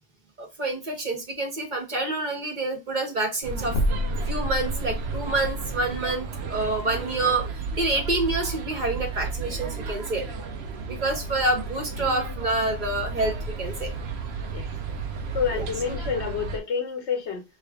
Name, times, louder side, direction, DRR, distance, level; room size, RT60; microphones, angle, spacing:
voice 1, 0.4-3.8 4.3-10.2 10.9-13.9 15.5-15.7, right 2 dB, 45° right, 1.2 m, -27 dB
sound 1, 3.4-16.6, right 4 dB, 75° right, 0.9 m, -33 dB
sound 2, 3.7-5.3, equal, 55° left, 1.0 m, -27 dB
voice 2, 15.3-17.4, left 6 dB, 80° left, 1.3 m, -28 dB
3.2 x 3.1 x 3.4 m
omnidirectional pair, 1.1 m